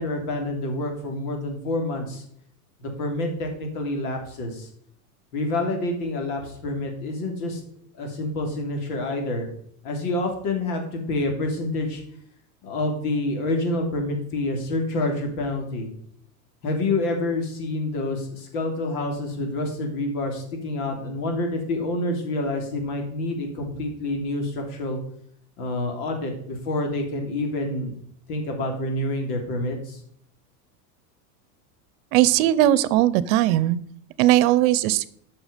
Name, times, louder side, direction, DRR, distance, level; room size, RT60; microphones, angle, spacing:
voice 1, 0.0-2.2 2.8-4.7 5.3-7.6 8.0-9.5 9.8-12.0 12.6-15.9 16.6-25.0 25.6-27.9 28.3-30.0, left 2 dB, 75° left, 3 dB, 3.3 m, -27 dB
voice 2, 32.1-33.8 34.2-35.1, right 14 dB, 65° right, 18 dB, 0.8 m, -19 dB
11.5 x 6.1 x 5.2 m, 0.66 s
supercardioid pair, 130°, 45 cm